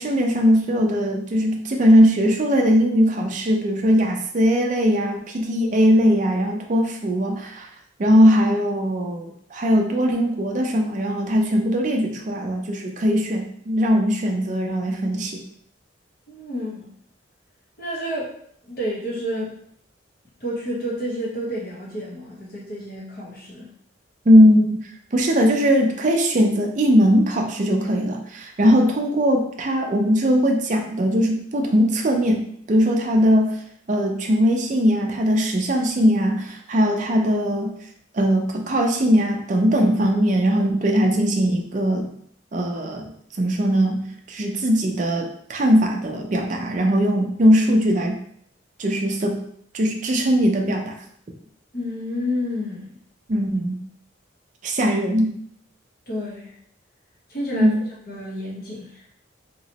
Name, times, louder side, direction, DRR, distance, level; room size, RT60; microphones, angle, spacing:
voice 1, 0.0-7.7 8.0-15.4 24.3-24.8 25.1-33.6 33.9-37.7 38.1-42.1 42.5-43.1 43.4-48.2 48.8-49.4 49.7-51.0 53.3-53.8 54.6-55.3 57.5-57.8, equal, 40° right, 2 dB, 0.4 m, -20 dB
voice 2, 16.3-16.9 17.8-18.3 18.6-19.5 20.4-23.7 51.7-52.9 56.1-56.5 57.3-57.7 58.1-59.0, equal, 50° left, -4 dB, 1.0 m, -29 dB
2.9 x 2.9 x 2.8 m, 0.65 s
head